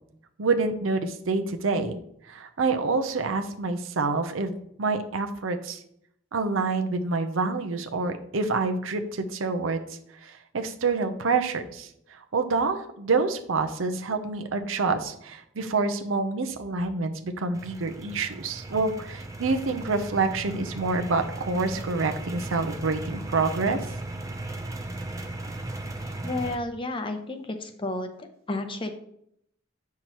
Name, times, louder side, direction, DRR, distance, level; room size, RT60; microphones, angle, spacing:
voice 1, 0.4-2.0 2.3-5.8 6.3-9.8 10.2-11.9 12.3-23.8, right 3 dB, 85° right, 7 dB, 0.7 m, -27 dB
sound 1, 17.5-26.6, right 2 dB, 15° right, 0.5 m, -37 dB
voice 2, 26.2-28.1 28.5-28.9, left 2 dB, 25° left, 7 dB, 0.7 m, -31 dB
8.1 x 5.8 x 3.0 m, 0.73 s
head